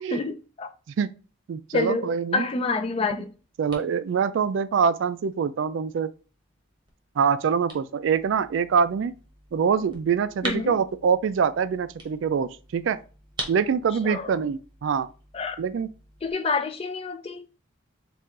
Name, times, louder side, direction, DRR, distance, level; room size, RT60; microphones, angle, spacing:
voice 1, 0.1-0.7 1.7-3.3 10.4-10.8 14.0-14.3 15.3-15.6 16.2-17.4, left 3 dB, 25° left, 0.3 m, -28 dB
voice 2, 1.5-2.5 3.6-6.1 7.2-9.1 9.5-13.0 13.5-15.1 15.6-15.9, right 6 dB, 65° right, 0.3 m, -24 dB
sound 1, 2.8-16.3, right 2 dB, 20° right, 0.9 m, -44 dB
4.5 x 2.4 x 3.7 m
head